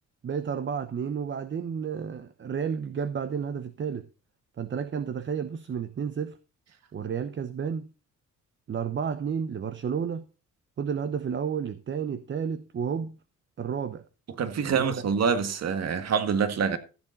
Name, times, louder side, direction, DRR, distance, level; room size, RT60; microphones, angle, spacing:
voice 1, 0.2-4.1 4.6-6.4 6.9-7.9 8.7-10.3 10.8-13.2 13.6-14.0 14.7-14.8, right 7 dB, 40° right, 0.8 m, -31 dB
voice 2, 14.4-16.8, right 6 dB, 60° right, 1.8 m, -26 dB
15.0 x 7.8 x 4.0 m
cardioid pair, 90°, 30 cm